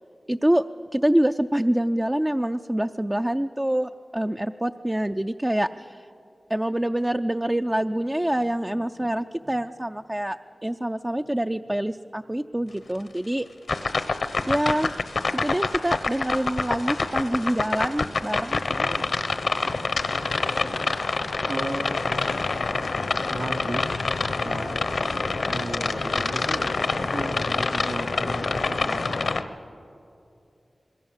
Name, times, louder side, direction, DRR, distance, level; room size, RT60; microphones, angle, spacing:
voice 1, 0.3-0.6 0.9-6.1 6.5-10.4 10.6-13.5 14.5-15.0 15.4-18.6, right 1 dB, 15° right, 7 dB, 0.5 m, -25 dB
sound 1, 13.7-29.4, left 3 dB, 75° left, 0.9 m, -26 dB
voice 2, 18.7-19.9 20.2-21.9 23.3-23.9 24.4-24.7 25.4-29.2, right 2 dB, 55° right, 3 dB, 3.3 m, -36 dB
27.0 x 21.5 x 7.3 m, 2.7 s
wide cardioid pair, 85°, 0 cm